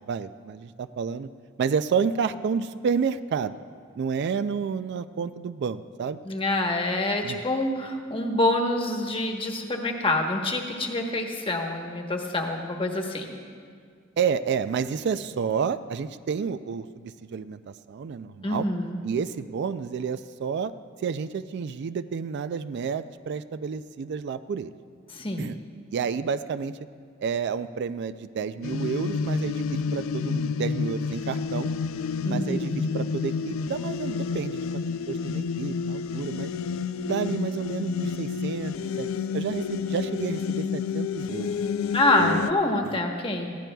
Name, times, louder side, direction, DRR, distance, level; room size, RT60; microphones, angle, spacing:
voice 1, 0.1-1.3 1.6-3.5 4.0-6.2 7.2-7.4 14.2-18.7 19.0-20.7 21.0-24.7 25.4-25.6 25.9-26.8 27.2-31.7 32.3-34.7 35.1-36.5 37.1-41.5 42.2-42.5 42.8-43.0, right 6 dB, 55° right, 13 dB, 0.3 m, -30 dB
voice 2, 6.2-13.3 18.4-19.0 25.1-25.5 32.2-32.8 41.9-43.6, left 2 dB, 25° left, 2 dB, 1.1 m, -26 dB
sound 1, 28.6-42.5, left 5 dB, 70° left, 0.4 m, -30 dB
21.0 x 15.0 x 2.3 m, 2.1 s
head